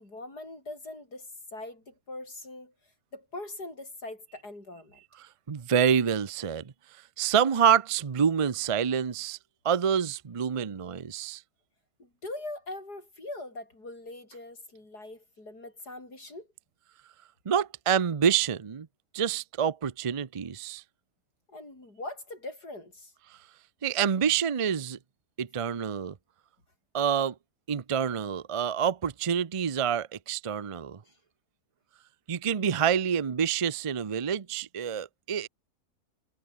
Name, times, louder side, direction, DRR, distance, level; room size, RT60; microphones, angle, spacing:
voice 1, 0.0-2.7 3.1-5.0 12.0-16.5 21.5-23.1 31.0-31.2, left 2 dB, 85° left, 8.2 m, -42 dB
voice 2, 5.2-6.7 7.2-9.4 9.6-11.4 17.5-18.9 19.1-20.8 23.8-25.0 25.4-26.1 26.9-27.3 27.7-31.0 32.3-35.5, right 8 dB, 35° right, 0.5 m, -27 dB
omnidirectional pair, 1.7 m